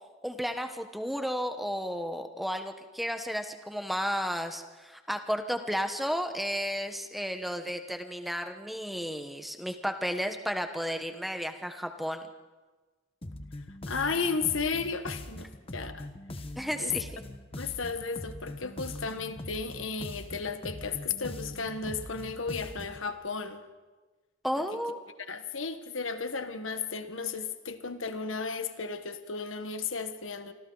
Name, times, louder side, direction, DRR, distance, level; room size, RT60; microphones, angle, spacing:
voice 1, 0.2-12.3 16.6-17.2 24.4-25.0, equal, ahead, 6 dB, 1.1 m, -33 dB
sound 1, 13.2-23.1, left 1 dB, 30° left, 1.2 m, -42 dB
voice 2, 13.9-16.1 16.8-16.9 17.6-23.6 25.3-30.5, left 5 dB, 90° left, 9 dB, 1.4 m, -34 dB
28.0 x 25.0 x 4.0 m, 1.3 s
head